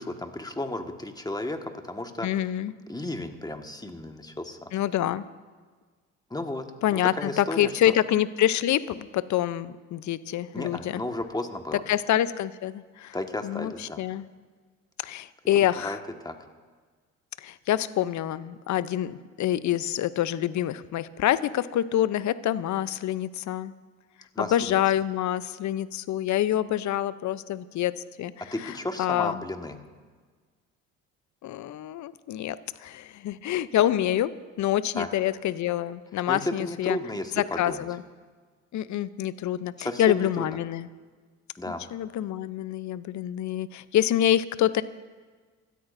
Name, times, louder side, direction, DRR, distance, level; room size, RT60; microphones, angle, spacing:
voice 1, 0.0-2.3 2.9-4.7 6.3-6.7 6.9-7.9 10.5-11.8 13.1-14.0 15.6-16.3 24.3-24.8 28.5-29.8 34.9-35.1 36.3-37.9 39.8-40.6 41.6-41.8, left 1 dB, 10° left, 5 dB, 1.6 m, -33 dB
voice 2, 2.2-2.7 4.7-5.2 6.8-11.0 11.9-13.2 13.4-14.3 15.0-16.0 17.4-23.7 24.4-28.3 28.6-29.4 31.4-37.0 37.4-38.0 38.7-40.9 41.9-44.8, left 12 dB, 50° left, 16 dB, 0.7 m, -26 dB
25.5 x 13.0 x 2.7 m, 1.5 s
hypercardioid pair, 60°, 36 cm